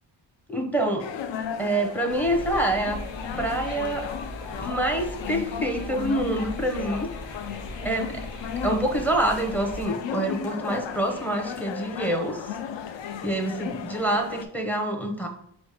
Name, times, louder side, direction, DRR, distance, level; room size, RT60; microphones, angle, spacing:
voice 1, 0.5-1.1 1.6-3.0 3.4-4.1 4.5-7.1 7.8-8.1 8.6-12.5 13.2-15.3, right 1 dB, 5° left, 3 dB, 0.6 m, -26 dB
sound 1, 1.0-14.4, left 8 dB, 70° left, 0.5 m, -35 dB
sound 2, 2.1-9.8, equal, 90° left, 1.1 m, -39 dB
5.1 x 2.1 x 4.8 m, 0.68 s
wide cardioid pair, 120°, 46 cm